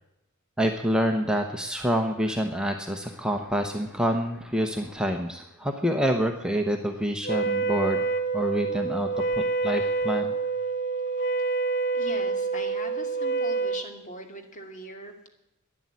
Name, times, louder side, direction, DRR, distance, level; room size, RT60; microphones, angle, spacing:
voice 1, 0.6-8.0 8.3-9.1 9.4-10.3, equal, 5° right, 3 dB, 1.0 m, -27 dB
Wind instrument woodwind instrument, 7.2-13.9, right 4 dB, 55° left, 1.0 m, -27 dB
voice 2, 11.9-15.3, left 1 dB, 35° left, 3 dB, 2.4 m, -40 dB
12.0 x 10.5 x 9.7 m, 0.87 s
head